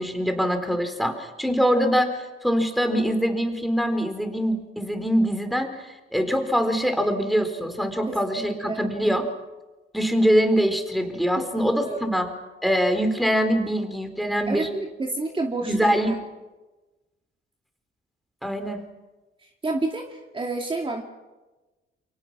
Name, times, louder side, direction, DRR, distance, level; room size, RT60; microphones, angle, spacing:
voice 1, 0.0-9.3 9.9-12.3 12.6-14.7 15.6-16.1 18.4-18.8, equal, ahead, 6 dB, 4.2 m, -23 dB
voice 2, 8.1-8.8 11.4-11.5 11.7-12.2 14.5-16.2 19.6-21.0, right 2 dB, 25° right, 2 dB, 2.4 m, -30 dB
29.5 x 24.0 x 6.2 m, 1.2 s
cardioid pair, 90°, 20 cm